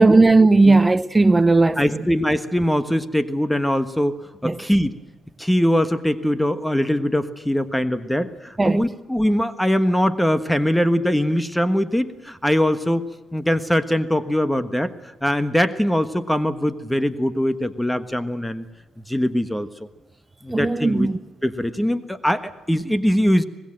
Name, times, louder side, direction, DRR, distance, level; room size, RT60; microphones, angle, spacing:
voice 1, 0.0-1.8 4.4-4.6 8.6-8.8 20.5-21.2, right 3 dB, 20° right, 0.9 m, -16 dB
voice 2, 1.8-4.1 4.4-5.0 5.4-13.0 13.3-14.9 15.2-18.6 19.1-19.7 20.4-21.1 21.4-23.4, equal, 5° left, 1.4 m, -21 dB
24.5 x 20.5 x 7.6 m
cardioid pair, 90°, 0 cm